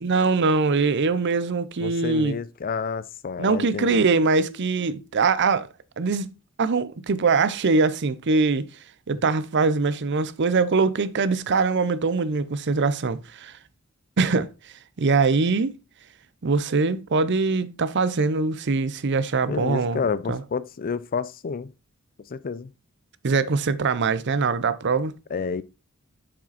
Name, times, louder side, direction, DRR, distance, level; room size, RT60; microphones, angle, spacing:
voice 1, 0.0-2.4 3.4-5.7 6.0-6.3 6.6-8.7 9.1-13.5 14.2-14.5 15.0-15.7 16.4-20.0 20.3-20.4 23.2-25.1, right 4 dB, 55° right, 0.6 m, -22 dB
voice 2, 1.8-4.1 19.5-21.7 22.3-22.7 25.3-25.6, left 5 dB, 45° left, 0.4 m, -29 dB
7.2 x 5.1 x 4.1 m
head